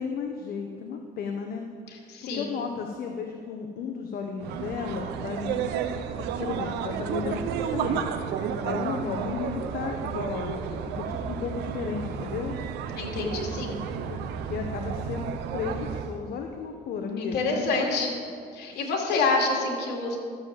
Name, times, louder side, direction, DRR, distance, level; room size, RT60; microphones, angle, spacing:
voice 1, 0.0-1.7 1.9-5.8 6.4-12.6 14.1-15.3 15.5-18.1 18.7-18.9, left 5 dB, 65° left, 4 dB, 1.1 m, -34 dB
voice 2, 2.1-2.5 13.0-13.8 17.2-18.2 18.5-20.2, left 3 dB, 80° left, 0 dB, 2.6 m, -27 dB
sound 1, 4.4-16.2, right 7 dB, 85° right, 0.8 m, -32 dB
13.5 x 7.4 x 7.5 m, 2.3 s
cardioid pair, 110°, 17 cm